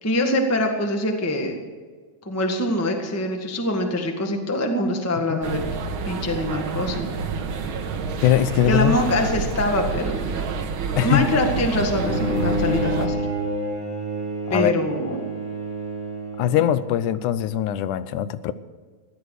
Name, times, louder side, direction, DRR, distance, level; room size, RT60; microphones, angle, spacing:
voice 1, 0.0-1.6 2.2-5.6 6.0-7.1 8.6-10.4 11.0-13.3 14.5-15.3, left 1 dB, 15° left, 3 dB, 0.5 m, -24 dB
sound 1, 5.4-13.1, right 5 dB, 60° right, 1.5 m, -28 dB
voice 2, 8.2-9.0 11.0-11.3 14.5-14.8 16.4-18.5, left 12 dB, 85° left, 14 dB, 2.2 m, -21 dB
Bowed string instrument, 11.8-17.1, equal, 10° right, 5.8 m, -28 dB
16.0 x 11.0 x 6.5 m, 1.5 s
omnidirectional pair, 3.5 m